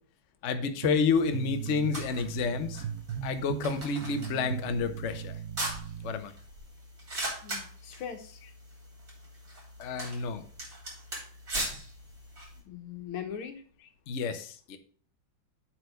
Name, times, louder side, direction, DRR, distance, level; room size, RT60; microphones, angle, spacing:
voice 1, 0.4-2.8 3.2-5.4 6.0-6.3 9.8-10.4 14.1-14.8, left 5 dB, 50° left, 8 dB, 0.9 m, -30 dB
sound 1, 0.8-6.1, right 9 dB, 80° right, 0.8 m, -38 dB
sound 2, 1.1-12.6, right 1 dB, 45° right, 4.2 m, -41 dB
voice 2, 7.4-8.4 12.7-13.6, left 8 dB, 85° left, 6 dB, 2.0 m, -40 dB
8.0 x 4.6 x 6.4 m, 0.43 s
omnidirectional pair, 2.3 m